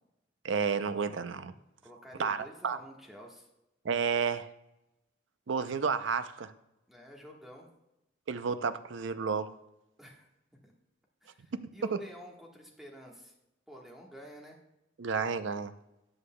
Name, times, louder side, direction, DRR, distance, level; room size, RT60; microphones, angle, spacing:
voice 1, 0.4-1.5 2.2-2.8 3.8-4.5 5.5-6.5 8.3-9.5 11.5-11.6 11.9-12.0 15.0-15.7, right 5 dB, 70° right, 12 dB, 0.5 m, -31 dB
voice 2, 1.8-3.5 6.9-7.7 10.0-10.3 10.6-10.7 11.2-13.3 13.7-14.6, equal, ahead, -1 dB, 1.3 m, -49 dB
13.0 x 8.1 x 2.2 m, 0.90 s
head